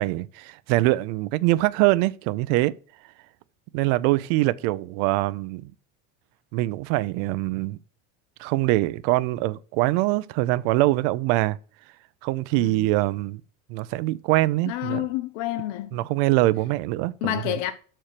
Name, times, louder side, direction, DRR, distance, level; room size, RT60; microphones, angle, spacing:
voice 1, 0.0-2.7 3.7-5.7 6.5-7.8 8.4-11.6 12.2-13.4 13.7-15.1 15.9-17.4, right 18 dB, 65° right, 0.5 m, -23 dB
voice 2, 14.7-16.0 17.2-17.7, left 14 dB, 70° left, 0.8 m, -29 dB
6.4 x 4.4 x 6.6 m
cardioid pair, 145°, 35 cm